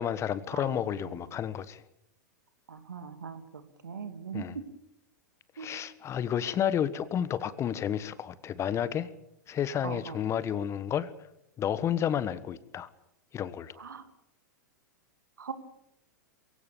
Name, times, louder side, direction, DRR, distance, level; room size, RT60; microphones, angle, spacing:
voice 1, 0.0-1.8 4.3-4.6 5.6-9.1 9.5-11.1 11.6-12.9 13.3-13.8, left 9 dB, 30° left, 16 dB, 1.3 m, -31 dB
voice 2, 0.5-1.1 2.7-4.6 5.6-5.7 9.8-10.2 13.8-14.0 15.4-15.5, right 6 dB, 80° right, 9 dB, 2.5 m, -40 dB
23.0 x 16.0 x 8.6 m, 0.81 s
hypercardioid pair, 100°, 10 cm